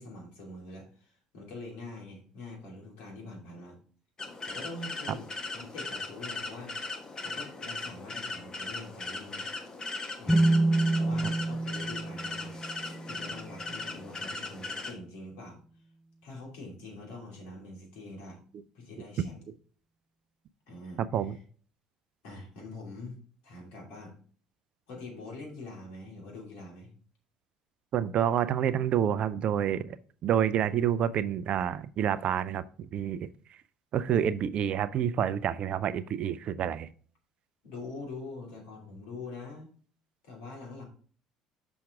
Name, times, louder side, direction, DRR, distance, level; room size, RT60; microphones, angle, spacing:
voice 1, 0.0-3.8 4.5-5.2 5.5-6.8 7.2-9.5 10.2-10.6 11.0-12.6 13.0-15.6 16.2-18.4 18.7-19.4 20.7-21.4 22.2-23.2 23.4-24.2 24.9-26.9 37.6-39.7 40.2-40.8, left 2 dB, 70° left, 0 dB, 2.6 m, -44 dB
sound 1, 4.2-14.9, left 3 dB, 30° left, 1.4 m, -38 dB
sound 2, 10.3-13.8, right 2 dB, 5° left, 0.8 m, -28 dB
voice 2, 27.9-33.3 33.9-36.9, right 9 dB, 50° right, 15 dB, 0.5 m, -28 dB
6.2 x 5.9 x 3.5 m, 0.44 s
hypercardioid pair, 65°, 2 cm